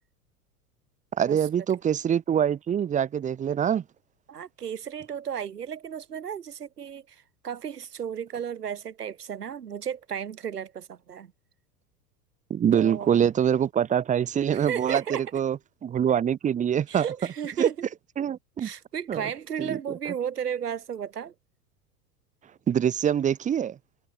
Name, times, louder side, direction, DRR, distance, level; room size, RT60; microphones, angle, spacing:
voice 1, 1.2-3.8 12.5-15.0 15.3-17.1 17.6-17.7 18.2-18.7 19.1-19.2 19.6-19.8 20.1-20.2 22.7-23.8, right 9 dB, 15° right, 0.9 m, -24 dB
voice 2, 4.3-7.0 7.4-11.3 12.7-13.3 14.5-15.2 16.9-17.9 18.6-21.3, right 8 dB, 80° right, 0.8 m, -34 dB
figure-of-eight pair, 85°, 46 cm